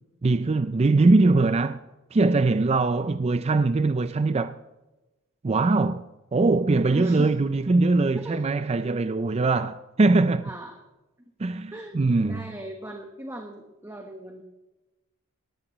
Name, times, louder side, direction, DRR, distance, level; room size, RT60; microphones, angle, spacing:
voice 1, 0.2-1.8 2.1-4.5 5.4-6.0 6.3-10.5 11.4-12.4, right 3 dB, 30° right, 0.4 m, -22 dB
voice 2, 6.9-7.3 8.2-8.4 10.4-10.8 11.7-14.4, equal, 10° right, 1.2 m, -38 dB
18.5 x 14.5 x 3.1 m
head